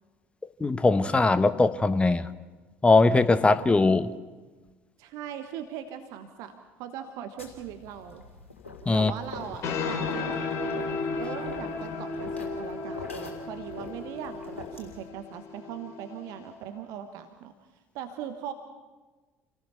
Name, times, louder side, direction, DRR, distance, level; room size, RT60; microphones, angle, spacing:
voice 1, 0.6-2.3 2.8-4.1 8.9-9.1, left 3 dB, 15° left, 13 dB, 1.1 m, -21 dB
voice 2, 5.0-8.2 8.9-10.5 11.2-17.5 17.9-18.5, right 9 dB, 55° right, 8 dB, 1.2 m, -40 dB
sound 1, 7.4-15.1, left 3 dB, 80° left, 3.1 m, -44 dB
sound 2, 9.3-16.5, left 4 dB, 45° left, 5.0 m, -34 dB
28.5 x 18.0 x 5.8 m, 1.3 s
figure-of-eight pair, 60°, 7 cm